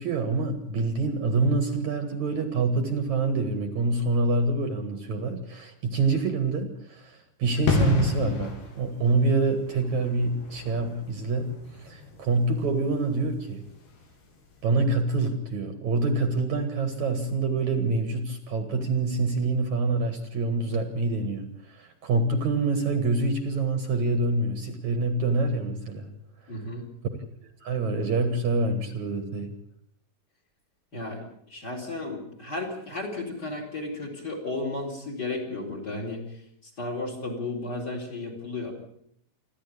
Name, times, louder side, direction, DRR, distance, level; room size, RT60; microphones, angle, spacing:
voice 1, 0.0-11.5 11.8-13.6 14.6-26.1 27.6-29.5, right 3 dB, 55° right, 8 dB, 2.9 m, -26 dB
sound 1, 7.7-14.2 14.4-14.6, left 3 dB, 85° left, 5.6 m, -31 dB
voice 2, 26.5-26.9 30.9-31.2 31.5-36.2 36.6-38.7, left 2 dB, 25° left, 5 dB, 4.5 m, -33 dB
28.0 x 12.0 x 8.6 m, 0.67 s
omnidirectional pair, 4.3 m